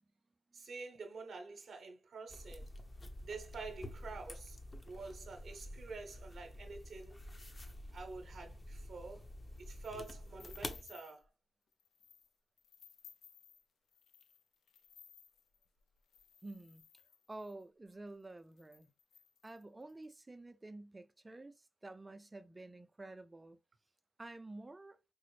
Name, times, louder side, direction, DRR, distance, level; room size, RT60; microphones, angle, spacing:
voice 1, 0.5-2.7 3.2-4.6 4.9-7.5 7.9-9.2 9.6-11.3, right 4 dB, 70° right, 0.7 m, -48 dB
sound 1, 2.3-10.8, left 1 dB, 30° left, 0.8 m, -49 dB
sound 2, 9.6-11.3 11.7-12.3 12.6-17.6 18.2-18.3 18.5-20.0, left 7 dB, 85° left, 0.4 m, -61 dB
voice 2, 16.4-16.9 17.3-18.9 19.4-23.6 24.2-25.0, right 2 dB, 25° right, 0.4 m, -50 dB
4.8 x 2.0 x 3.1 m
cardioid pair, 60°, 0 cm